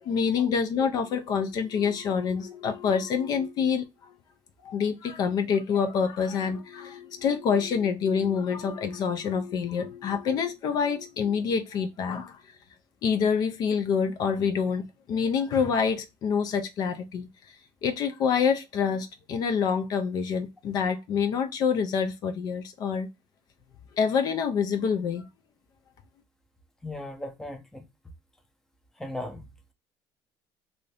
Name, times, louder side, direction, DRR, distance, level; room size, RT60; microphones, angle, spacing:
voice 1, 0.0-4.1 4.6-12.4 13.0-17.3 17.8-23.1 24.0-25.3, left 6 dB, 50° left, 0.5 m, -27 dB
voice 2, 26.8-27.9 29.0-29.7, left 1 dB, 5° left, 0.6 m, -38 dB
2.7 x 2.6 x 3.2 m
cardioid pair, 145°, 9 cm